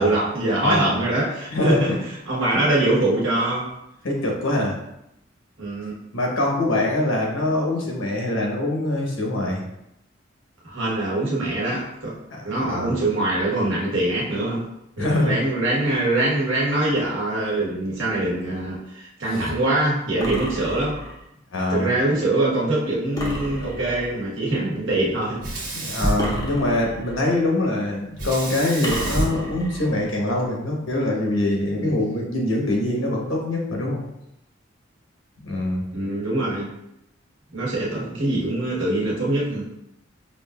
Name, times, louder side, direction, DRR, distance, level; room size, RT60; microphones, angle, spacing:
voice 1, 0.0-2.0 2.3-3.7 5.6-5.9 10.6-12.2 12.4-14.6 15.0-21.0 21.7-25.4 31.7-32.0 35.9-36.7 37.5-39.7, right 2 dB, 70° right, -5 dB, 1.2 m, -23 dB
voice 2, 0.6-1.0 1.5-1.8 2.5-2.6 4.0-4.8 6.1-9.6 12.3-13.0 15.0-15.4 19.3-19.5 21.5-21.9 25.7-34.0 35.4-35.8, left 1 dB, 85° left, -1 dB, 1.0 m, -24 dB
sound 1, 20.2-21.3 23.2-24.2 26.2-27.3 28.8-29.9, equal, 20° left, 0.6 m, -31 dB
Sink (filling or washing), 25.4-27.0 28.2-30.4, right 1 dB, 45° right, 1.2 m, -29 dB
5.3 x 2.4 x 2.2 m, 0.83 s
head